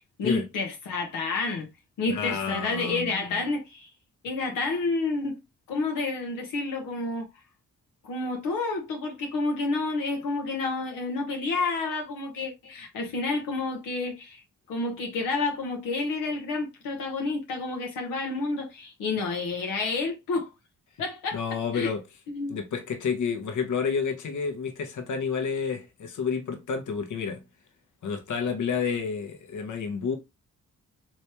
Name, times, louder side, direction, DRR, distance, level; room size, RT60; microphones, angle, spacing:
voice 1, 0.2-1.7 2.0-3.9 4.2-5.4 5.7-7.3 8.0-14.4 14.7-20.5 21.0-21.9 22.3-22.6, left 3 dB, 90° left, 0.9 m, -29 dB
voice 2, 2.1-3.4 21.3-22.0 22.5-27.4 28.0-30.2, left 6 dB, 65° left, 1.0 m, -30 dB
3.3 x 3.0 x 2.8 m
cardioid pair, 60°, 32 cm